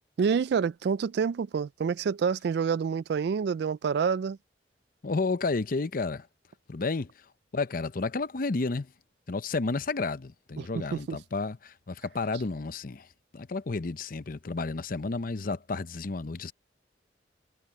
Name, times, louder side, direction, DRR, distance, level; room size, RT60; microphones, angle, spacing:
voice 1, 0.2-4.4 10.6-11.2, right 6 dB, 65° right, 0.3 m, -28 dB
voice 2, 5.0-6.3 6.7-7.1 7.5-8.9 9.3-13.1 13.3-16.5, left 3 dB, 50° left, 0.7 m, -31 dB
head